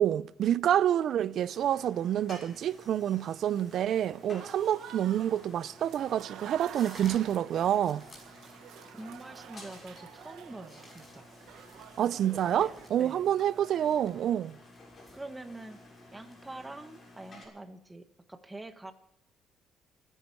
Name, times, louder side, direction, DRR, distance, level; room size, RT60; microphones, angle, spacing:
voice 1, 0.0-8.0 12.0-14.6, right 10 dB, 60° right, 0.5 m, -28 dB
sound 1, 1.5-17.5, left 2 dB, 30° left, 6.7 m, -54 dB
Applause / Crowd, 3.5-14.4, right 10 dB, 75° right, 1.1 m, -50 dB
sound 2, 6.4-16.7, left 1 dB, 10° left, 5.5 m, -57 dB
voice 2, 8.9-11.3 12.1-13.2 15.1-15.8 16.1-18.9, right 2 dB, 10° right, 1.2 m, -45 dB
29.0 x 10.0 x 4.6 m
cardioid pair, 130°, 0 cm